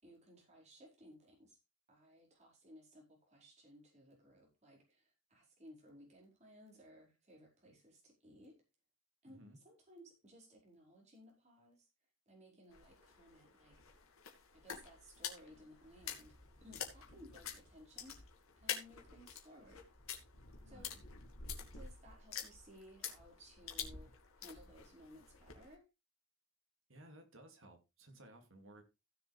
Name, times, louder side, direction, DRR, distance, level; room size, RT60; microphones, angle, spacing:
voice 1, 0.0-1.6 1.9-8.6 9.2-11.9 12.3-13.8 14.5-16.3 16.6-18.2 18.6-19.9 20.7-20.9 21.7-25.8, equal, 30° right, -2 dB, 5.3 m, -60 dB
voice 2, 9.3-9.6 20.5-21.0 26.9-28.8, right 1 dB, 60° right, 4 dB, 2.6 m, -58 dB
sound 1, 12.7-25.7, left 7 dB, 70° left, 2.2 m, -48 dB
16.0 x 7.0 x 3.4 m, 0.26 s
head